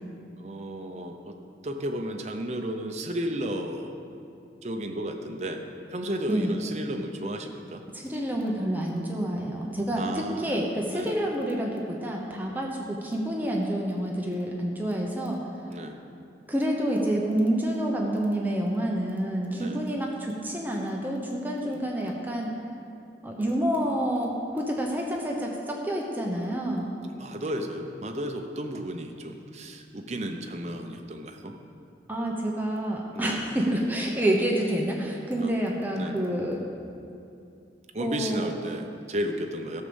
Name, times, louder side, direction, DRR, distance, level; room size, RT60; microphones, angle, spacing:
voice 1, 0.4-1.4 1.6-3.9 4.6-5.6 5.9-7.8 10.0-10.6 10.9-11.1 15.7-16.0 19.5-19.8 21.6-21.9 27.2-31.5 33.1-33.4 35.4-35.5 35.9-36.2 37.9-39.8, equal, 40° right, 4 dB, 0.8 m, -33 dB
voice 2, 7.9-15.4 16.5-22.5 23.2-26.9 32.1-36.6 38.0-38.5, right 1 dB, 10° right, -1 dB, 1.0 m, -28 dB
13.5 x 6.4 x 7.1 m, 2.6 s
head